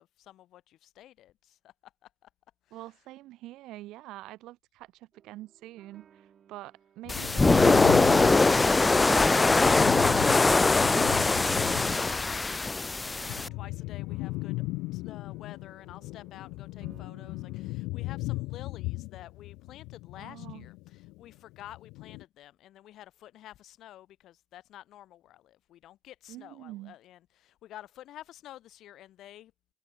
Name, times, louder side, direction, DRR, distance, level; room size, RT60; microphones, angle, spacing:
voice 1, 0.0-2.3 2.7-2.8 10.5-14.6 14.9-29.5, left 13 dB, 70° left, 4.0 m, -50 dB
voice 2, 2.7-10.1 20.2-20.7 26.3-27.0, right 16 dB, 80° right, 7.0 m, -45 dB
sound 1, 5.1-17.7, right 8 dB, 50° right, 5.3 m, -58 dB
sound 2, 7.0-12.4 12.6-21.2 21.5-22.2, left 22 dB, 90° left, 2.8 m, -36 dB
sound 3, 7.1-13.5, left 3 dB, 20° left, 0.6 m, -22 dB
open air
cardioid pair, 100°, 0 cm